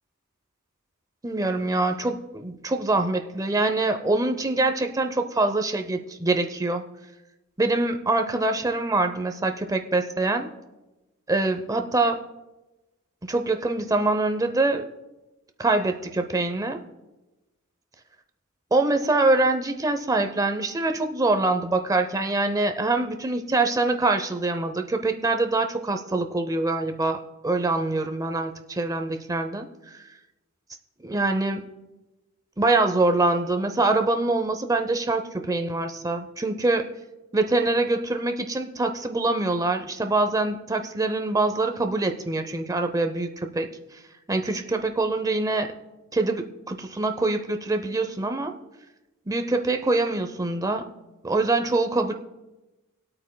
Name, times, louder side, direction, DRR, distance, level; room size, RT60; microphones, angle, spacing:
voice 1, 1.2-6.8 7.6-10.5 11.3-12.2 13.2-14.9 15.6-16.8 18.7-29.7 31.0-31.6 32.6-36.9 37.3-43.7 44.3-45.7 46.1-48.5 49.3-50.9 51.2-52.1, right 2 dB, 15° right, 6 dB, 0.6 m, -24 dB
25.0 x 8.6 x 2.2 m, 1.1 s
head